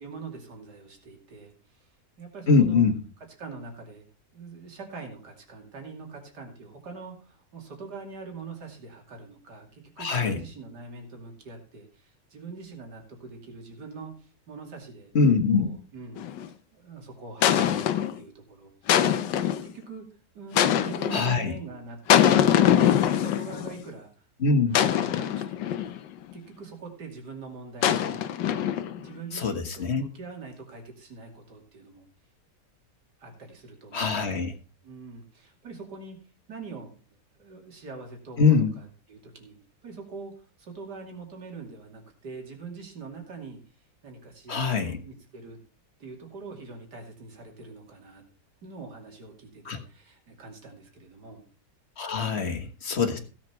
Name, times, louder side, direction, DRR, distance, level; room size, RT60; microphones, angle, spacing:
voice 1, 0.0-1.9 2.2-2.9 3.4-4.0 4.3-15.1 15.6-16.3 16.7-18.9 19.4-20.1 20.3-24.1 24.5-25.8 26.3-28.2 28.6-32.1 33.2-34.5 34.8-36.2 36.5-37.0 37.3-39.6 39.8-40.3 40.6-43.6 44.0-45.6 46.0-48.2 48.6-51.4 52.9-53.2, right 4 dB, 65° right, 2 dB, 3.2 m, -43 dB
voice 2, 2.5-3.0 10.0-10.4 15.1-15.7 21.1-21.6 24.4-24.7 29.3-30.1 33.9-34.5 38.4-38.8 44.5-45.0 49.6-49.8 52.0-53.2, left 4 dB, 40° left, 7 dB, 1.6 m, -23 dB
sound 1, 16.2-16.5 17.4-18.2 18.9-19.7 20.6-21.3 22.1-23.8 24.7-26.0 27.8-29.1, left 10 dB, 85° left, 1.5 m, -23 dB
16.0 x 7.5 x 4.5 m, 0.38 s
omnidirectional pair, 1.9 m